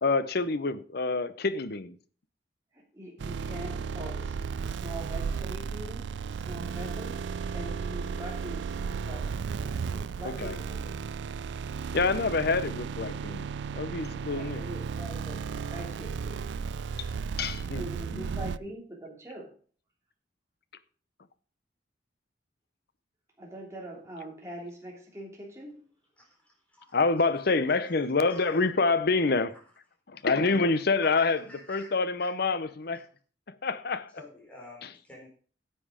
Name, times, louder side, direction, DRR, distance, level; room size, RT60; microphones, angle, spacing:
voice 1, 0.0-2.0 10.4-10.5 11.9-13.5 13.7-14.6 17.0-17.1 17.4-17.8 18.1-18.2 26.9-29.5 30.1-31.4 31.7-33.1 33.6-34.1, left 3 dB, 60° left, 0.7 m, -27 dB
voice 2, 2.7-10.9 14.3-16.5 17.7-19.5 23.4-25.8, right 1 dB, 15° right, 3.0 m, -43 dB
sound 1, 3.2-18.6, right 5 dB, 75° right, 0.3 m, -34 dB
voice 3, 26.2-27.3 28.3-28.7 29.5-29.6 30.2-30.3 31.0-32.3 34.2-35.3, left 1 dB, 10° left, 4.3 m, -50 dB
9.8 x 7.8 x 5.0 m
head